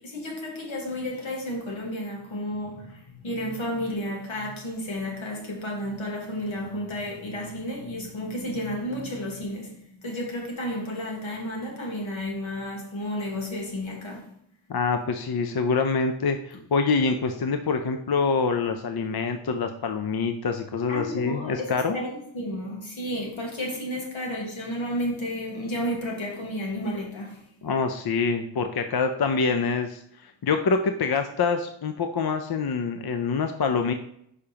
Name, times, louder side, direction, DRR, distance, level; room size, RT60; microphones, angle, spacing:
voice 1, 0.0-14.3 20.9-27.5, equal, 80° left, 1.6 m, -32 dB
voice 2, 14.7-22.0 27.6-33.9, left 4 dB, 55° left, 0.6 m, -25 dB
6.6 x 5.0 x 2.9 m
wide cardioid pair, 60°, 47 cm